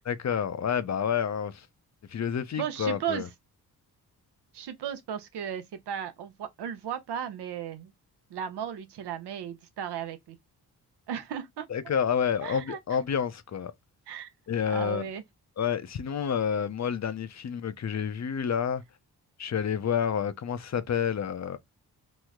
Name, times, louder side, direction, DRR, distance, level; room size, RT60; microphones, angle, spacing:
voice 1, 0.0-1.7 2.1-3.3 11.7-13.7 14.5-15.1 15.6-18.8 19.4-21.6, left 7 dB, 45° left, 0.5 m, -29 dB
voice 2, 2.6-3.2 4.5-7.9 8.3-10.4 11.1-11.6 12.4-12.8 14.1-14.3 14.7-15.2, right 8 dB, 85° right, 0.7 m, -35 dB
3.1 x 2.0 x 3.5 m
cardioid pair, 70°, 39 cm